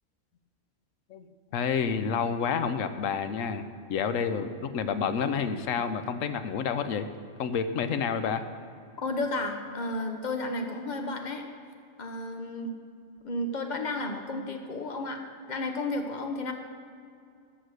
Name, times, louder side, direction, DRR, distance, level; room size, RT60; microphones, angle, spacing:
voice 1, 1.5-7.1 7.4-8.4, left 6 dB, 80° left, 10 dB, 1.1 m, -29 dB
voice 2, 9.0-11.4 12.0-12.8 13.2-15.2 15.5-16.5, left 2 dB, 40° left, 4 dB, 1.0 m, -32 dB
13.0 x 6.1 x 6.4 m, 2.4 s
omnidirectional pair, 1.3 m